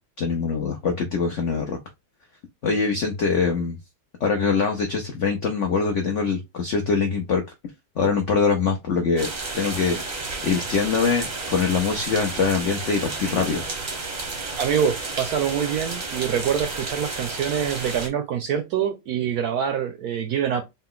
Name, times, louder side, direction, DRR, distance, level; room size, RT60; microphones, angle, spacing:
voice 1, 0.2-1.8 2.6-3.8 4.2-7.4 8.0-9.3 9.5-13.6, left 5 dB, 85° left, 0.6 m, -23 dB
sound 1, 9.2-18.1, right 3 dB, 40° right, 0.6 m, -32 dB
voice 2, 14.6-20.6, right 8 dB, 75° right, 0.9 m, -25 dB
4.0 x 2.2 x 3.6 m
omnidirectional pair, 2.1 m